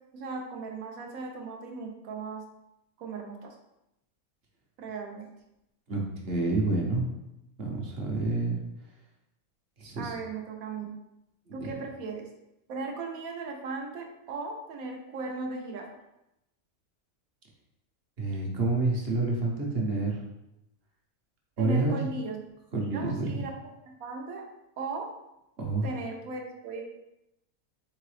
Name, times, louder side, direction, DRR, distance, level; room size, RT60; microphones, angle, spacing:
voice 1, 0.1-2.4 3.0-3.6 4.8-5.3 10.0-10.9 11.5-12.2 12.7-15.9 21.6-22.4 22.7-23.7 24.0-24.4 24.8-25.1 25.8-26.8, right 3 dB, 75° right, 2 dB, 1.2 m, -37 dB
voice 2, 5.9-7.0 7.6-8.6 9.8-10.1 11.6-11.7 18.2-20.2 21.6-22.0 22.7-23.4 25.6-25.9, right 2 dB, 50° right, 0 dB, 1.0 m, -28 dB
3.8 x 3.7 x 3.2 m, 0.87 s
omnidirectional pair, 1.5 m